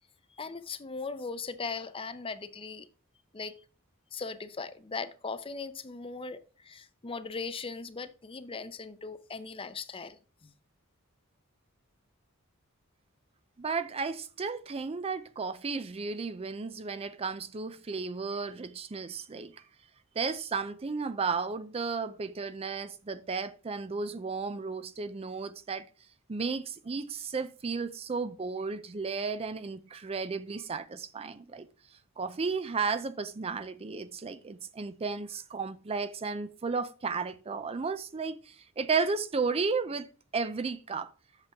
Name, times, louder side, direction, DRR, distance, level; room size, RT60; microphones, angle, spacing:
voice 1, 0.4-2.9 3.3-3.5 4.1-10.5, left 4 dB, 25° left, 0.6 m, -39 dB
voice 2, 13.6-19.6 20.2-25.9 26.3-31.7 32.2-40.1 40.3-41.1, right 4 dB, 30° right, 0.4 m, -33 dB
8.2 x 6.8 x 3.5 m
head